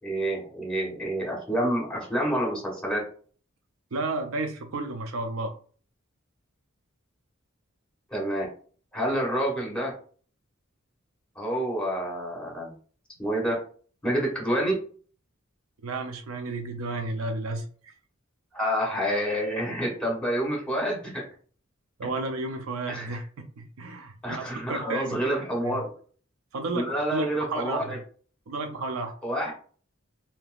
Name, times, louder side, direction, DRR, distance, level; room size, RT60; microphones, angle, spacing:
voice 1, 0.0-3.0 8.1-8.4 8.9-9.9 11.3-12.7 13.2-13.5 14.0-14.7 18.5-21.2 22.9-23.1 24.2-25.9 26.7-28.0 29.2-29.5, equal, 5° left, -1 dB, 1.3 m, -28 dB
voice 2, 3.9-5.5 15.8-17.9 22.0-23.2 23.6-25.2 25.6-25.8 26.5-27.8 28.5-29.1, right 2 dB, 70° right, 5 dB, 0.5 m, -32 dB
3.3 x 2.8 x 2.3 m, 0.43 s
head